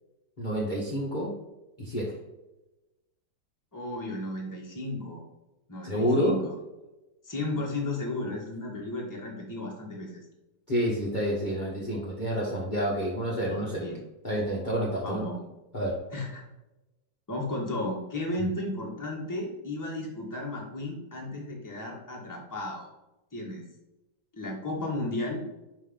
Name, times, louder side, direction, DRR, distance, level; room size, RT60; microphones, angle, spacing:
voice 1, 0.4-1.3 1.8-2.2 5.8-6.4 10.7-13.9 14.2-15.2 15.7-16.0, equal, 30° left, -5 dB, 1.2 m, -28 dB
voice 2, 3.7-5.2 5.7-6.5 7.2-10.3 13.4-14.0 15.0-15.4 16.1-16.4 17.3-22.9 23.3-23.6 24.3-25.4, left 2 dB, 10° left, -2 dB, 1.3 m, -34 dB
5.4 x 5.3 x 3.8 m, 1.0 s
omnidirectional pair, 1.9 m